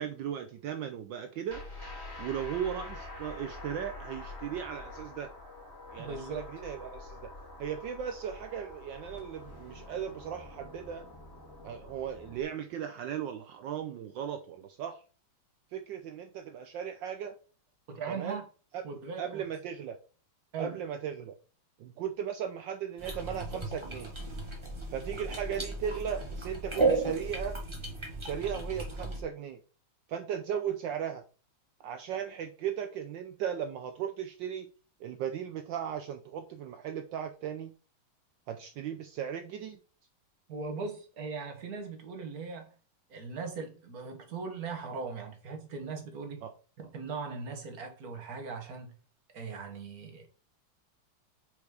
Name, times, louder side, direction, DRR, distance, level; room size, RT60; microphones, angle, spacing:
voice 1, 0.0-1.6 2.2-5.3 5.9-7.3 7.6-11.1 11.6-15.0 15.7-17.3 18.1-18.4 18.7-18.8 19.2-20.0 20.6-21.3 21.8-24.1 24.9-27.6 28.2-29.6 30.1-31.2 31.8-34.7 35.0-37.7 38.5-39.8 46.4-46.5, right 8 dB, 75° right, 1.1 m, -37 dB
sound 1, 1.5-12.4, left 2 dB, 10° left, 2.0 m, -46 dB
voice 2, 6.0-6.5 17.9-18.4 18.8-19.4 20.5-20.8 40.5-42.7 43.1-46.5 46.8-48.9 49.3-50.3, right 4 dB, 50° right, 1.6 m, -39 dB
sound 2, 23.0-29.2, right 3 dB, 15° right, 1.1 m, -34 dB
5.3 x 4.7 x 4.8 m
omnidirectional pair, 2.4 m